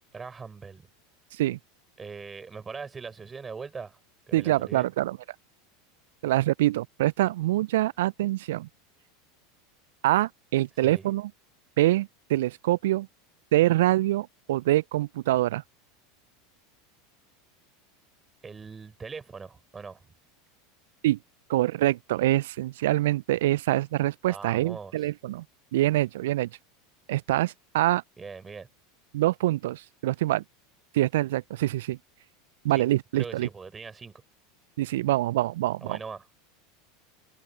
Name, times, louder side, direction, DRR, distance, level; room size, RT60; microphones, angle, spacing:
voice 1, 0.1-0.9 2.0-4.0 4.3-4.9 10.8-11.1 18.4-20.0 24.3-25.1 28.2-28.7 32.7-32.8 33.1-34.1 35.8-36.2, right 5 dB, 20° right, 7.1 m, -41 dB
voice 2, 4.3-5.2 6.2-8.7 10.0-11.3 11.8-13.1 13.5-15.6 21.0-21.2 21.5-25.4 25.7-26.5 27.1-28.0 29.1-30.4 30.9-32.0 32.6-33.5 34.8-36.0, right 15 dB, 65° right, 0.8 m, -25 dB
figure-of-eight pair, 80°, 0 cm